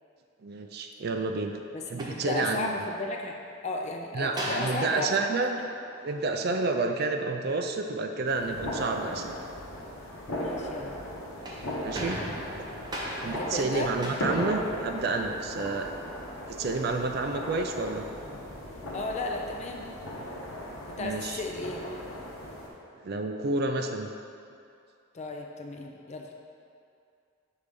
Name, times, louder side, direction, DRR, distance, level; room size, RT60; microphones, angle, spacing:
voice 1, 0.4-1.6 1.9-2.7 4.1-5.6 6.0-9.4 11.8-12.2 13.2-15.9 16.6-18.1 21.0-21.4 22.9-24.1, right 3 dB, 50° right, 5 dB, 0.4 m, -30 dB
voice 2, 1.7-5.2 5.6-5.7 10.3-10.9 13.2-13.9 18.9-19.9 20.9-21.8 25.1-26.3, left 2 dB, 35° left, 2 dB, 0.4 m, -35 dB
sound 1, 1.8-3.0 4.3-6.8 11.2-15.3, equal, 20° right, 0.7 m, -39 dB
sound 2, 8.3-22.7, left 1 dB, 80° left, 1.2 m, -37 dB
6.4 x 3.3 x 5.2 m, 2.5 s
head